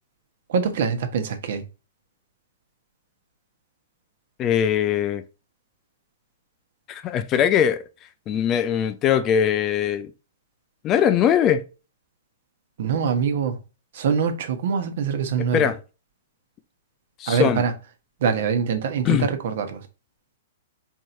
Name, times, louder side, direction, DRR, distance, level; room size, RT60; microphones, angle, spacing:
voice 1, 0.5-1.6 12.8-13.6 13.9-15.7 17.3-17.7 18.2-19.9, right 6 dB, 60° right, 1.0 m, -24 dB
voice 2, 4.4-5.2 6.9-7.8 8.3-10.1 10.8-11.6 15.5-15.8 17.2-17.6 19.1-19.3, left 9 dB, 25° left, 0.4 m, -21 dB
4.6 x 4.4 x 2.6 m
hypercardioid pair, 155°, 0 cm